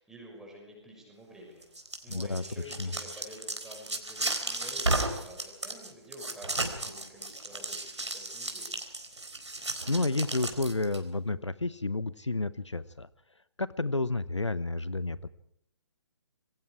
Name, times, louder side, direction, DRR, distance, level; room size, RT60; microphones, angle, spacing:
voice 1, 0.0-1.7 2.0-8.8, equal, 5° right, -1 dB, 6.5 m, -49 dB
sound 1, 1.6-11.0, right 2 dB, 80° right, 4.4 m, -34 dB
voice 2, 2.1-2.9 9.9-13.1 13.6-15.3, left 2 dB, 80° left, 16 dB, 1.0 m, -31 dB
27.5 x 22.5 x 4.8 m, 0.73 s
figure-of-eight pair, 140°, 15 cm